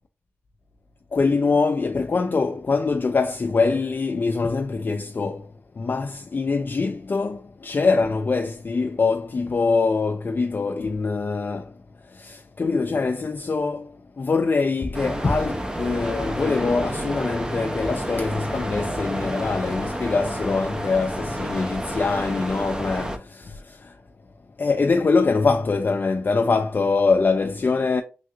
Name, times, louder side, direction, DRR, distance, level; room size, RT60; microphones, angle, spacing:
voice 1, 1.1-5.5 5.8-11.7 12.1-23.9 24.6-28.0, left 4 dB, 45° left, 0.3 m, -23 dB
sound 1, 14.9-23.2, right 1 dB, 15° right, 0.5 m, -30 dB
3.3 x 2.4 x 2.7 m
cardioid pair, 65°, 5 cm